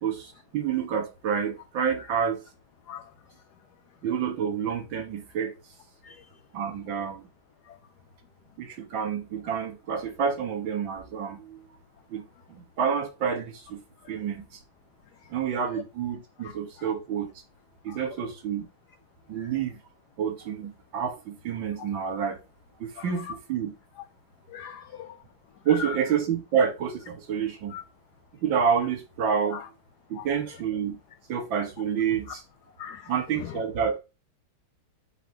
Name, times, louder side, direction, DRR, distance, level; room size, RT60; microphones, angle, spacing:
voice 1, 0.0-2.4 4.0-5.5 6.5-7.3 8.6-11.6 12.1-12.2 12.5-13.8 14.1-14.5 15.3-17.3 17.8-18.7 19.3-19.8 20.2-22.4 22.8-23.7 25.7-27.8 28.4-29.6 30.1-31.0 31.3-32.4 33.1-33.9, right 7 dB, 65° right, 2.0 m, -28 dB
voice 2, 24.5-25.2 25.8-25.9 27.7-27.8 29.5-29.6 30.2-30.3 32.8-33.1, left 8 dB, 90° left, 0.8 m, -39 dB
4.7 x 4.0 x 5.3 m
omnidirectional pair, 2.4 m